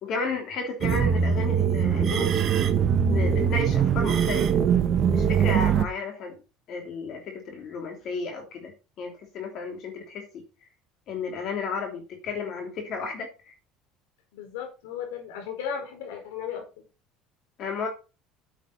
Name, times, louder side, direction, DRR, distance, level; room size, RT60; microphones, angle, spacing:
voice 1, 0.0-2.4 3.0-4.5 5.1-6.4 6.7-8.7 9.0-10.4 11.1-13.5 17.6-17.9, left 4 dB, 55° left, 3 dB, 3.1 m, -33 dB
sound 1, 0.8-5.9, right 7 dB, 45° right, 1.3 m, -22 dB
voice 2, 14.3-16.6, left 8 dB, 90° left, 4 dB, 4.8 m, -35 dB
9.1 x 7.9 x 4.1 m, 0.31 s
supercardioid pair, 105°, 0 cm